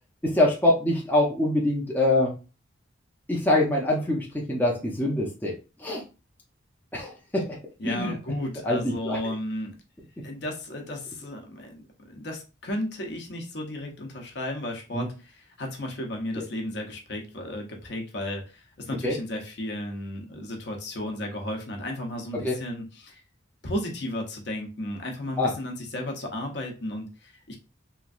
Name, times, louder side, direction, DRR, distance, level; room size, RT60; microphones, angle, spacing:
voice 1, 0.2-2.3 3.3-5.5 5.8-6.0 6.9-7.5 7.8-8.2 8.6-8.8 9.1-9.2 14.9-15.1 19.0-19.1 22.4-22.5 25.4-25.5, left 1 dB, 10° left, -2 dB, 0.5 m, -24 dB
voice 2, 7.8-9.7 10.2-23.2 23.6-27.6, left 1 dB, 60° left, 2 dB, 0.7 m, -34 dB
3.0 x 2.5 x 2.4 m, 0.31 s
head